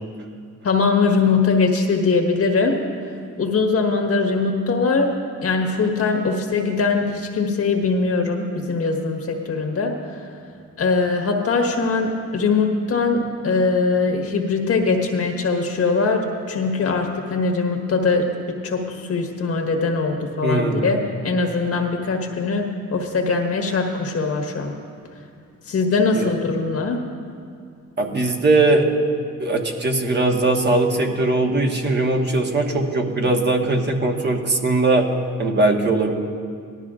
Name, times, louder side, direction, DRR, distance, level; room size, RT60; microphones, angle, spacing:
voice 1, 0.6-2.8 3.4-5.1 5.4-10.2 10.8-24.7 25.7-27.0, left 4 dB, 50° left, 3 dB, 1.5 m, -21 dB
voice 2, 20.4-20.9 26.1-26.2 28.0-28.9 29.4-35.1 35.4-36.1, right 2 dB, 35° right, 1 dB, 1.3 m, -20 dB
18.0 x 12.5 x 2.5 m, 2.3 s
cardioid pair, 90°, 30 cm